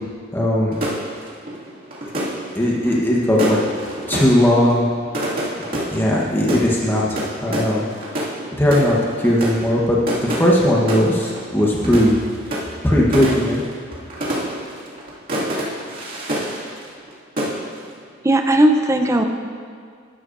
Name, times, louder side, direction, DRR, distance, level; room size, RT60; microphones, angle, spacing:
voice 1, 0.3-0.8 2.5-3.6 4.1-4.9 5.9-7.8 8.6-12.2 12.5-13.6, left 1 dB, 10° left, -4 dB, 1.0 m, -18 dB
sound 1, 0.7-17.1 17.4-17.9, right 1 dB, 50° right, 2.2 m, -28 dB
voice 2, 18.2-19.2, right 1 dB, 15° right, 5 dB, 0.6 m, -16 dB
12.0 x 11.5 x 2.6 m, 2.1 s
head